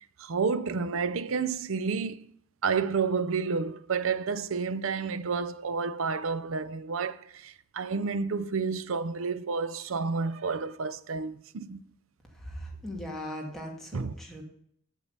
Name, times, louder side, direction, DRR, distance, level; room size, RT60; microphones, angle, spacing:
voice 1, 0.2-2.3 2.6-11.8 13.9-14.1, right 5 dB, 75° right, 0.6 m, -30 dB
voice 2, 12.3-14.4, equal, ahead, 2.0 m, -39 dB
7.5 x 7.3 x 6.6 m
head